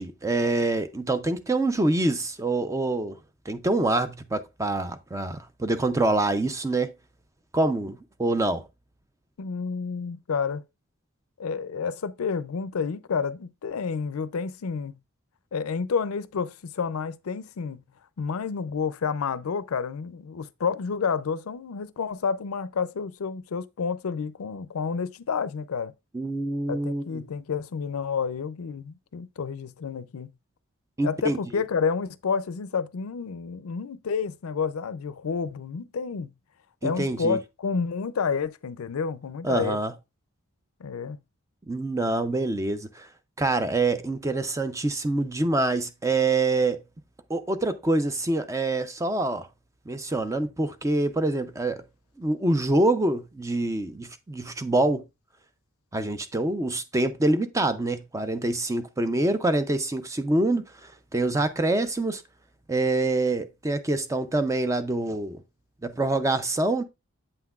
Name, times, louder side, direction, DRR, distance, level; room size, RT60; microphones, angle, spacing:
voice 1, 0.0-3.2 3.5-6.9 7.5-8.7 26.1-27.3 31.0-31.4 36.8-37.4 39.4-39.9 41.7-43.1 43.4-46.8 47.3-49.5 49.9-51.8 52.2-55.0 55.9-62.2 62.7-65.4 65.8-66.8, right 2 dB, 15° right, 0.4 m, -25 dB
voice 2, 9.4-10.6 11.4-15.0 15.5-17.8 18.2-25.9 26.7-30.3 31.0-36.3 36.8-39.8 40.8-41.2, left 5 dB, 85° left, 0.5 m, -30 dB
7.9 x 5.8 x 2.4 m
head